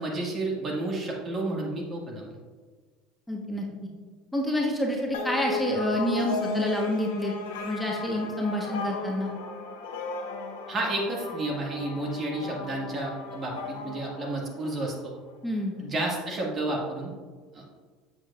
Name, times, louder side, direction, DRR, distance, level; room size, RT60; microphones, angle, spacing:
voice 1, 0.0-2.3 10.7-15.1 15.8-17.1 17.5-17.6, right 2 dB, 40° right, -1 dB, 1.9 m, -31 dB
voice 2, 3.3-3.7 4.3-7.3 7.6-9.3 15.4-15.8, equal, 5° left, -1 dB, 1.3 m, -28 dB
sound 1, 5.1-14.9, left 4 dB, 85° left, 1.0 m, -35 dB
7.5 x 7.3 x 2.5 m, 1.5 s
hypercardioid pair, 85°, 0 cm